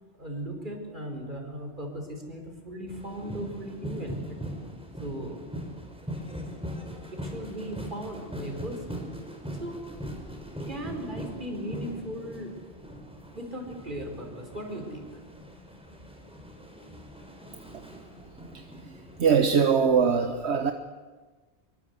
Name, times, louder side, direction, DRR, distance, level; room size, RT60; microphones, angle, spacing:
voice 1, 0.2-4.4 5.0-5.4 7.1-9.0 9.6-9.8 10.6-12.5 13.3-15.2, right 1 dB, 45° right, 3 dB, 5.0 m, -37 dB
sound 1, 2.9-19.4, equal, 5° right, 4.7 m, -40 dB
voice 2, 19.2-20.7, right 6 dB, 75° right, 7 dB, 1.4 m, -22 dB
25.0 x 23.5 x 8.3 m, 1.4 s
omnidirectional pair, 1.1 m